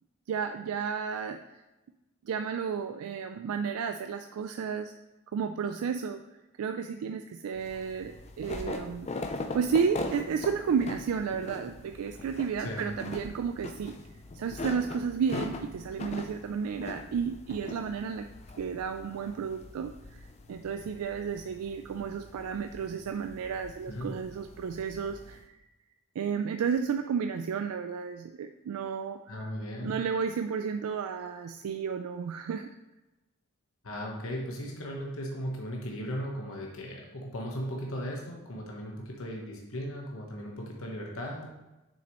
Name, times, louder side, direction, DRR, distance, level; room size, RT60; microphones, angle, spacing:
voice 1, 0.3-1.4 2.2-4.9 5.3-6.2 6.6-9.1 9.5-14.0 14.3-18.3 18.6-25.6 26.2-29.2 29.8-32.7, right 6 dB, 90° right, 8 dB, 0.3 m, -32 dB
sound 1, 7.6-25.4, left 2 dB, 30° left, 0.4 m, -42 dB
voice 2, 12.6-12.9 23.9-24.1 29.3-30.0 33.8-41.5, equal, 70° left, -1 dB, 1.1 m, -37 dB
7.0 x 6.1 x 3.0 m, 1.0 s
head